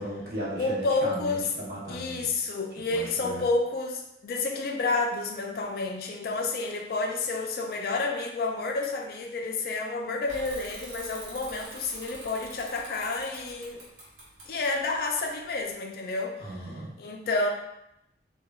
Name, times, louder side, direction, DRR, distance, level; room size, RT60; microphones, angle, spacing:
voice 1, 0.0-2.2 2.9-3.5 16.4-16.9, right 1 dB, 55° right, -5 dB, 0.7 m, -36 dB
voice 2, 0.6-1.5 1.9-13.8 14.5-16.6 17.0-17.5, left 3 dB, 55° left, 3 dB, 0.3 m, -30 dB
Bicycle / Mechanisms, 10.3-15.7, right 1 dB, 85° right, 0.9 m, -46 dB
3.0 x 2.2 x 2.2 m, 0.84 s
head